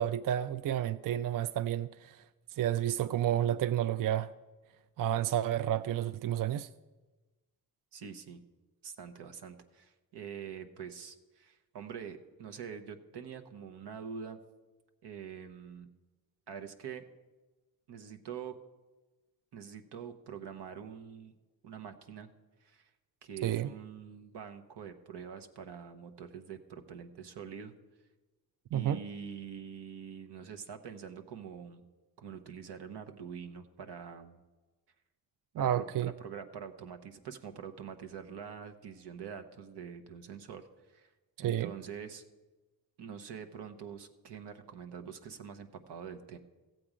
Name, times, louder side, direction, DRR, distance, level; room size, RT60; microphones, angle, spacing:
voice 1, 0.0-2.2 2.5-4.3 5.0-6.7 23.4-23.7 28.7-29.0 35.5-36.1 41.4-41.7, right 11 dB, 55° right, 0.5 m, -30 dB
voice 2, 7.9-8.4 8.8-14.4 15.0-15.9 16.5-17.0 17.9-18.6 19.5-21.3 21.6-22.3 22.6-22.9 23.2-27.7 28.7-31.8 32.2-34.4 35.6-35.9 36.2-41.1 41.4-42.2 43.0-46.4, right 7 dB, 85° right, 1.0 m, -45 dB
14.5 x 7.7 x 5.0 m
cardioid pair, 55°, 40 cm